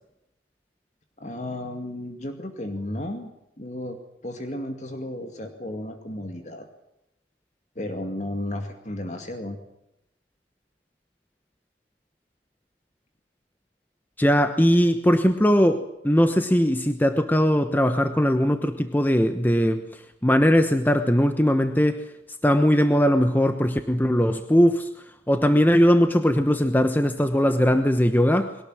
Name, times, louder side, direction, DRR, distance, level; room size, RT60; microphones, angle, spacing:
voice 1, 1.2-3.3 3.6-6.7 7.8-9.6, left 1 dB, 40° left, 6 dB, 2.2 m, -33 dB
voice 2, 14.2-22.0 22.4-24.9 25.3-28.6, equal, 10° left, 8 dB, 1.0 m, -20 dB
22.0 x 18.5 x 9.0 m, 0.85 s
head